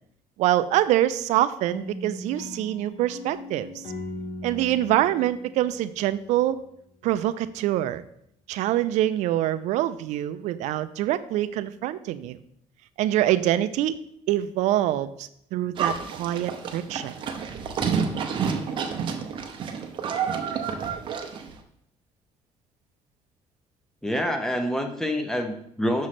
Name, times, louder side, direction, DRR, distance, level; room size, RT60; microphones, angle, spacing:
voice 1, 0.4-3.8 4.4-6.6 7.0-8.0 8.5-12.4 13.0-14.0 14.3-17.1, right 13 dB, 80° right, 14 dB, 0.4 m, -25 dB
sound 1, 1.7-6.6, left 1 dB, 40° left, 1.0 m, -39 dB
Livestock farm animals working animals, 15.8-21.5, right 6 dB, 45° right, 0.7 m, -29 dB
voice 2, 24.0-26.1, equal, 5° left, 5 dB, 0.7 m, -27 dB
6.2 x 3.2 x 5.8 m, 0.72 s
cardioid pair, 155°, 12 cm